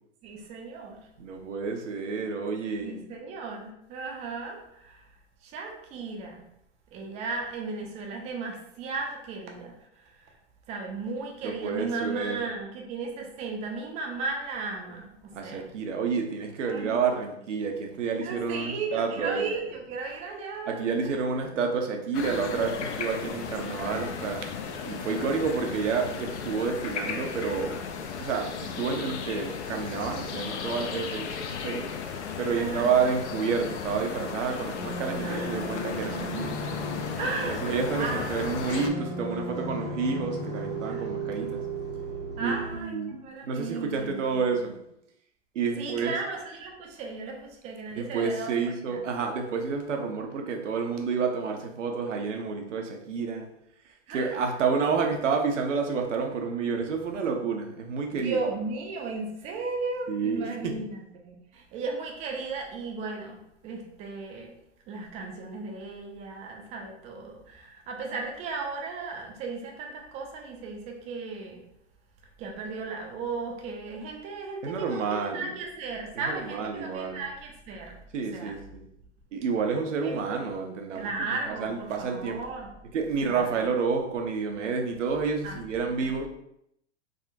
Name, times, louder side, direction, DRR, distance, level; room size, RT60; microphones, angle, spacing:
voice 1, 0.2-1.1 2.8-5.1 5.4-6.5 6.9-10.4 10.7-15.6 16.6-17.1 18.1-20.8 30.0-30.2 32.5-32.9 35.2-36.5 37.2-38.5 40.9-41.1 42.4-42.9 43.2-44.2 45.8-48.5 48.9-49.0 54.1-54.4 58.1-64.5 64.9-71.6 72.4-78.0 78.3-78.6 80.0-80.5 80.9-82.7 83.2-83.6 85.4-85.6 85.9-86.1, right 4 dB, 20° right, 1 dB, 0.4 m, -36 dB
voice 2, 1.2-3.0 11.4-12.5 15.3-19.4 20.7-24.5 24.8-27.8 28.2-31.9 32.4-36.5 37.4-41.6 42.4-44.7 45.5-46.1 48.0-53.5 54.1-58.4 60.1-60.8 74.6-75.5 76.4-77.2 78.1-78.8 79.3-81.1 81.6-82.4 82.9-86.3, right 5 dB, 80° right, 3 dB, 0.7 m, -29 dB
sound 1, 22.1-38.9, left 6 dB, 65° left, 0.5 m, -35 dB
sound 2, 34.8-42.8, right 1 dB, 85° left, 1.3 m, -35 dB
3.7 x 2.1 x 2.6 m, 0.76 s
hypercardioid pair, 110°, 36 cm